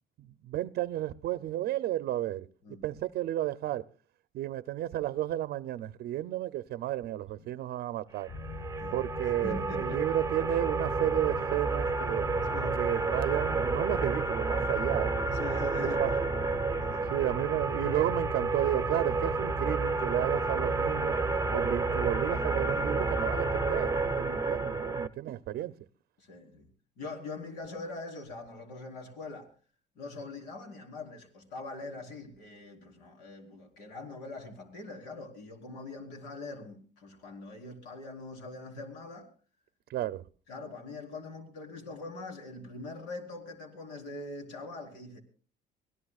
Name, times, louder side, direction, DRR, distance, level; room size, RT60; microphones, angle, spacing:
voice 1, 0.2-2.5 2.8-3.9 4.3-8.3 8.9-12.3 12.7-15.1 15.8-16.1 17.1-21.2 21.5-25.7 39.9-40.2, right 13 dB, 70° right, 0.6 m, -32 dB
sound 1, 8.3-24.1, left 3 dB, 40° left, 1.3 m, -41 dB
sound 2, 8.3-25.1, right 3 dB, 20° right, 0.7 m, -30 dB
voice 2, 9.2-10.2 10.9-11.0 11.2-11.5 12.5-12.8 15.3-16.3 16.8-17.1 22.7-22.8 25.5-25.6 26.2-26.7 27.0-29.5 30.0-39.3 40.5-45.2, left 2 dB, 90° left, 4.1 m, -43 dB
24.5 x 17.0 x 2.4 m
cardioid pair, 110°, 17 cm